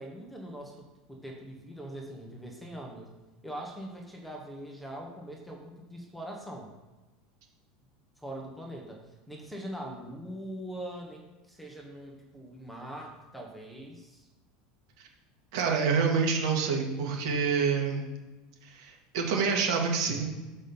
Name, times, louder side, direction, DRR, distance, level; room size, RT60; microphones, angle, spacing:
voice 1, 0.0-3.1 3.4-6.7 8.2-14.3, right 1 dB, ahead, 0 dB, 1.0 m, -42 dB
voice 2, 15.5-18.0 18.7-20.3, right 5 dB, 70° right, 1 dB, 1.9 m, -27 dB
6.1 x 5.3 x 6.9 m, 1.1 s
supercardioid pair, 165°, 3 cm